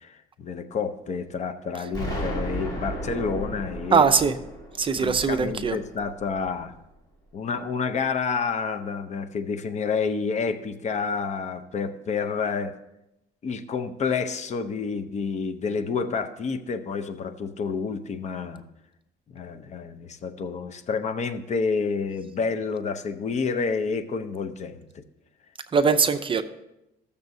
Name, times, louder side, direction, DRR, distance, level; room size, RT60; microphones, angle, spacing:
voice 1, 0.0-4.1 4.9-6.7 7.3-12.7 13.4-18.6 19.3-25.0, left 5 dB, 45° left, 9 dB, 0.7 m, -29 dB
Explosion, 1.9-6.8, equal, 20° left, 3.2 m, -34 dB
voice 2, 3.9-4.4 4.8-5.8 25.7-26.4, right 5 dB, 30° right, 10 dB, 0.5 m, -21 dB
14.5 x 6.8 x 2.7 m, 0.90 s
cardioid pair, 110°, 17 cm